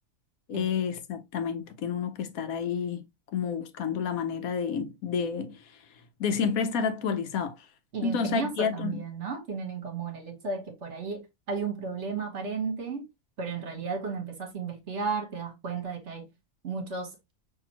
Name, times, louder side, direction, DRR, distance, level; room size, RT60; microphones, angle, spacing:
voice 1, 0.5-3.1 3.3-5.6 6.2-7.5 8.0-9.0, left 6 dB, 75° left, 1.1 m, -29 dB
voice 2, 7.9-13.0 13.4-16.3 16.6-17.1, right 5 dB, 55° right, 1.4 m, -34 dB
5.7 x 3.0 x 2.9 m
omnidirectional pair, 1.5 m